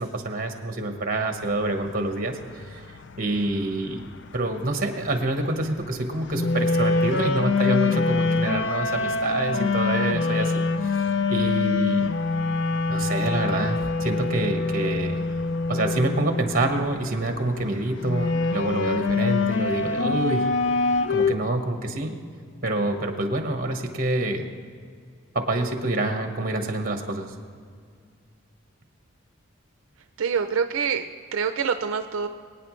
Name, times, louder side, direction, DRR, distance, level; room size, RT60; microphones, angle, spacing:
voice 1, 0.0-2.8 3.2-4.1 4.3-12.1 12.9-15.3 15.7-20.5 21.1-22.2 22.6-24.5 25.3-27.3, right 2 dB, 40° right, 5 dB, 1.2 m, -27 dB
sound 1, 1.4-21.3, left 3 dB, 55° left, 0.5 m, -25 dB
voice 2, 30.2-32.3, right 6 dB, 80° right, 8 dB, 0.5 m, -26 dB
23.0 x 9.1 x 3.2 m, 2.2 s
head